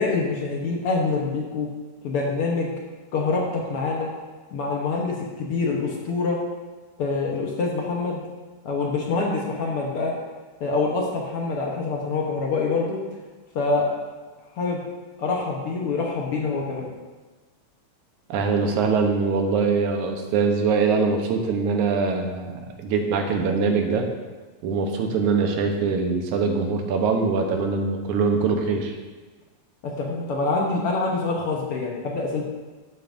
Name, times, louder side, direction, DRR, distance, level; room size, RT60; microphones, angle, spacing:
voice 1, 0.0-1.7 2.0-2.7 3.1-4.1 4.5-6.4 7.0-8.2 8.6-10.1 10.6-13.0 13.5-13.9 14.5-14.8 15.2-16.9 29.8-32.4, left 3 dB, 60° left, -2 dB, 1.7 m, -25 dB
voice 2, 18.3-24.1 24.6-29.0, right 4 dB, 85° right, 3 dB, 2.4 m, -23 dB
11.5 x 8.4 x 2.6 m, 1.3 s
omnidirectional pair, 3.3 m